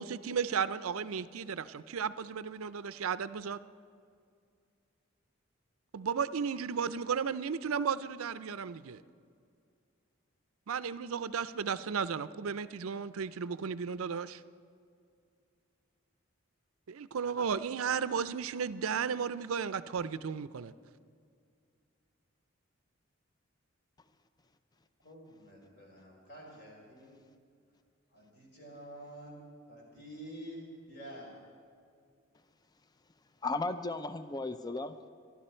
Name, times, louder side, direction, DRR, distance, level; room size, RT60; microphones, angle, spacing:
voice 1, 0.0-3.6 5.9-9.0 10.7-14.4 16.9-20.7, right 6 dB, 80° right, 15 dB, 0.5 m, -34 dB
voice 2, 25.0-27.2 28.1-29.4 29.7-31.3, right 1 dB, 50° left, -1 dB, 4.3 m, -48 dB
voice 3, 33.4-35.1, left 3 dB, 20° left, 11 dB, 0.4 m, -35 dB
24.0 x 11.5 x 4.4 m, 2.3 s
head